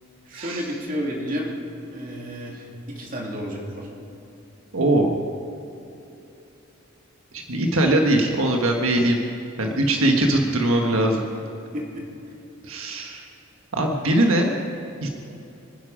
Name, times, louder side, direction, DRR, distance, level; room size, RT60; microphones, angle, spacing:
voice 1, 0.3-1.5 1.9-3.9 10.0-10.4 11.7-12.0, equal, 40° right, -2 dB, 2.8 m, -31 dB
voice 2, 4.7-5.1 7.3-9.2 9.6-11.2 12.6-13.3 13.7-14.5 15.0-15.1, right 1 dB, 90° right, 2 dB, 1.4 m, -21 dB
25.5 x 10.0 x 5.0 m, 2.8 s
head